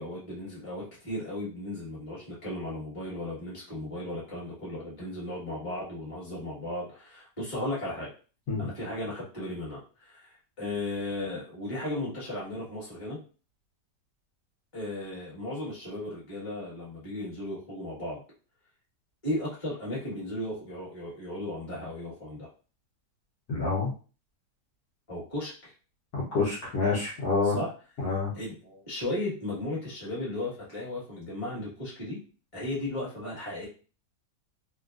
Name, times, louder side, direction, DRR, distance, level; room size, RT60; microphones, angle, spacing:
voice 1, 0.0-8.1 8.6-13.2 14.7-18.2 19.2-22.5 25.1-25.7 27.4-27.7 28.3-32.2 32.5-33.7, left 1 dB, 20° left, -7 dB, 1.3 m, -35 dB
voice 2, 23.5-23.9 26.1-27.6 28.0-28.3, left 4 dB, 60° left, -7 dB, 1.4 m, -27 dB
3.2 x 2.4 x 2.5 m, 0.37 s
omnidirectional pair, 1.9 m